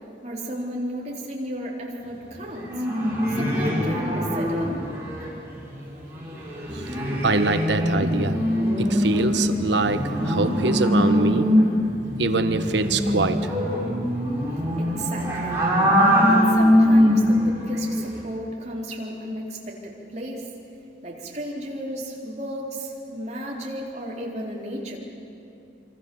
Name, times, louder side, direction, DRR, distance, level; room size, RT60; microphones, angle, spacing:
voice 1, 0.2-2.7 3.3-4.7 14.8-15.6 16.3-20.4 21.0-25.0, equal, 40° right, -3 dB, 4.0 m, -33 dB
sound 1, 2.5-5.3 5.6-5.7 6.0-17.5 17.8-18.2, equal, 15° right, 6.3 m, -22 dB
voice 2, 7.2-8.4 8.8-11.5 12.2-13.5, right 3 dB, 85° right, 9 dB, 1.2 m, -24 dB
26.5 x 25.5 x 7.2 m, 2.8 s
head